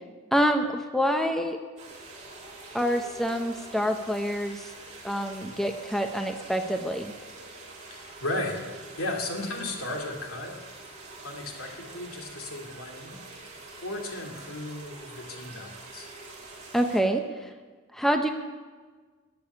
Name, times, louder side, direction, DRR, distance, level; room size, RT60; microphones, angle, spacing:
voice 1, 0.3-1.6 2.7-4.6 5.0-7.1 16.7-17.2 17.9-18.3, equal, ahead, 5 dB, 0.7 m, -26 dB
sound 1, 1.8-17.0, right 2 dB, 30° right, 2.8 m, -45 dB
voice 2, 7.9-8.6 9.0-10.6 11.2-13.2 13.8-16.1, left 2 dB, 75° left, 1 dB, 2.5 m, -35 dB
14.0 x 7.0 x 9.8 m, 1.4 s
head